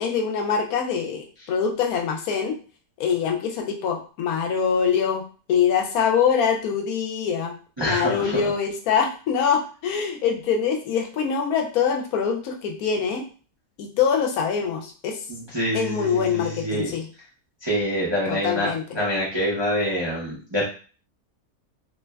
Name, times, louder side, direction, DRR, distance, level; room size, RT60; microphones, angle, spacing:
voice 1, 0.0-2.6 3.0-5.2 5.5-7.5 7.8-13.2 13.8-15.2 15.7-17.0 18.3-18.8, left 7 dB, 75° left, 2 dB, 1.0 m, -24 dB
voice 2, 7.8-8.4 15.3-16.9 17.6-20.6, equal, 35° right, -7 dB, 0.4 m, -26 dB
3.1 x 2.1 x 2.2 m, 0.38 s
omnidirectional pair, 1.6 m